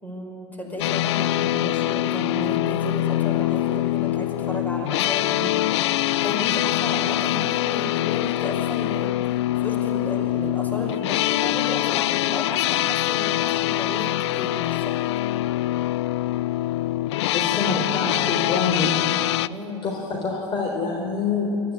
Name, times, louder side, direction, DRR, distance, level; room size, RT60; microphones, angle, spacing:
voice 1, 0.0-15.0 19.5-19.8, left 1 dB, 10° left, 0 dB, 5.5 m, -33 dB
sound 1, 0.8-19.5, left 15 dB, 60° left, 0.5 m, -24 dB
voice 2, 17.3-18.9 19.8-21.7, left 4 dB, 30° left, 0 dB, 4.0 m, -26 dB
27.0 x 14.5 x 9.7 m, 3.0 s
figure-of-eight pair, 90°, 16 cm